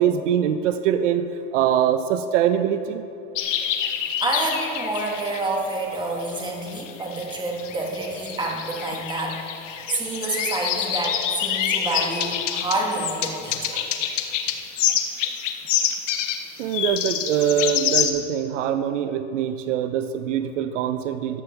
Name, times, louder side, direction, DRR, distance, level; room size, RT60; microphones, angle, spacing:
voice 1, 0.0-3.0 16.6-21.4, right 9 dB, 80° right, 10 dB, 0.7 m, -23 dB
sound 1, 3.3-5.6 6.2-18.1, left 9 dB, 85° left, 1.0 m, -27 dB
voice 2, 4.2-14.0, right 2 dB, 10° right, -1 dB, 1.9 m, -28 dB
14.5 x 11.0 x 3.4 m, 2.7 s
supercardioid pair, 130°, 36 cm